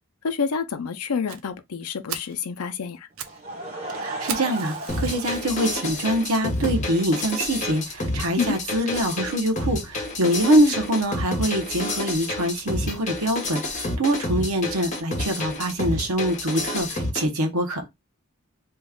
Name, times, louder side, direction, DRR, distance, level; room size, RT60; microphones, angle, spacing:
voice 1, 0.2-3.1 8.4-8.6 10.6-10.7, left 5 dB, 90° left, 0.5 m, -28 dB
Fire, 1.3-1.4 1.8-1.9 2.1-2.4 2.9-3.4 3.7-3.8 4.3-5.6 6.2-6.3 6.8-6.9 7.2-7.3 7.6-7.7, right 9 dB, 70° right, 0.5 m, -36 dB
Laughter / Crowd, 3.3-6.8, right 2 dB, 35° right, 1.2 m, -36 dB
voice 2, 4.0-17.9, right 1 dB, 90° right, 0.9 m, -24 dB
sound 1, 4.9-17.2, left 2 dB, 35° left, 0.9 m, -29 dB
3.0 x 2.3 x 3.5 m
head